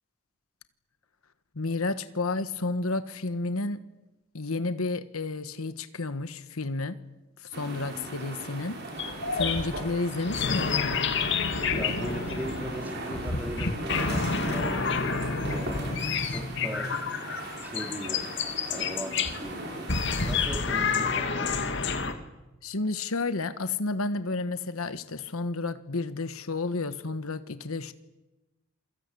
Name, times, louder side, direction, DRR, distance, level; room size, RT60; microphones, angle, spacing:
voice 1, 1.5-3.8 4.3-7.0 7.4-8.8 9.3-10.9 22.6-27.9, left 3 dB, 80° left, 12 dB, 1.3 m, -31 dB
sound 1, 7.5-20.4, right 1 dB, 50° right, 6.7 m, -39 dB
sound 2, 9.0-19.4 19.9-22.1, left 5 dB, 55° left, 2.4 m, -29 dB
voice 2, 11.7-14.9 15.4-16.9 17.6-18.3 18.7-19.9 20.2-21.6, equal, 10° right, 3 dB, 3.8 m, -38 dB
28.0 x 23.5 x 8.5 m, 1.1 s
head